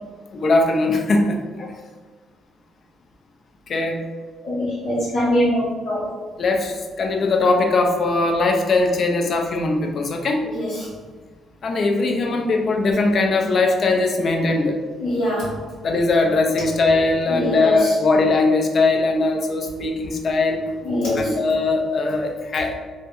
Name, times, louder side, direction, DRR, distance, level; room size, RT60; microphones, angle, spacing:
voice 1, 0.3-1.4 3.7-4.0 6.4-10.4 11.6-14.8 15.8-20.6 21.2-22.7, left 3 dB, 55° left, 2 dB, 0.4 m, -20 dB
voice 2, 4.4-6.1 10.4-10.9 15.0-15.6 17.3-18.0 20.8-21.4, left 1 dB, 80° left, -9 dB, 0.9 m, -23 dB
2.2 x 2.0 x 2.9 m, 1.4 s
cardioid pair, 90°, 0 cm